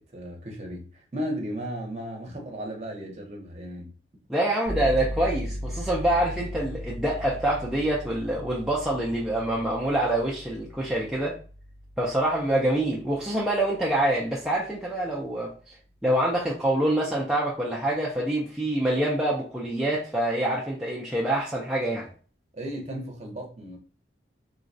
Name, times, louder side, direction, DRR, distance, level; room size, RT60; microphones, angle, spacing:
voice 1, 0.0-3.9 22.5-23.8, equal, 35° right, 0.8 m, -35 dB
voice 2, 4.3-11.4 12.0-15.8 16.0-22.1, right 1 dB, 5° right, 0.5 m, -26 dB
sound 1, 4.7-15.2, equal, 80° left, 1.5 m, -38 dB
3.8 x 2.2 x 2.6 m
head